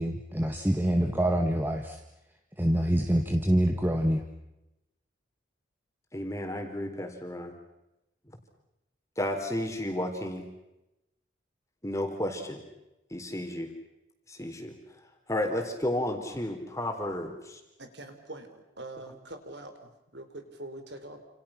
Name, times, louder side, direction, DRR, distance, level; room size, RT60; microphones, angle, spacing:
voice 1, 0.0-2.0 2.6-4.2, right 1 dB, 10° right, 4 dB, 1.7 m, -26 dB
voice 2, 6.1-7.5 9.2-10.4 11.8-12.6 13.1-13.7 14.3-14.7 15.3-17.6, left 1 dB, 15° left, 4 dB, 4.1 m, -32 dB
voice 3, 17.8-21.2, right 2 dB, 60° right, 7 dB, 4.5 m, -44 dB
29.5 x 28.5 x 6.0 m, 0.92 s
head